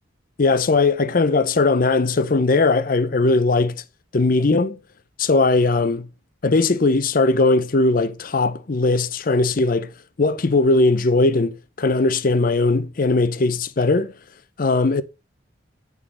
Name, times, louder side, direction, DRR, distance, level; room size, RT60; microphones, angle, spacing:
voice 1, 0.4-3.8 4.1-4.8 5.2-6.1 6.4-9.9 10.2-14.1 14.6-15.0, left 3 dB, 45° left, 0.6 m, -19 dB
9.8 x 3.8 x 3.8 m
head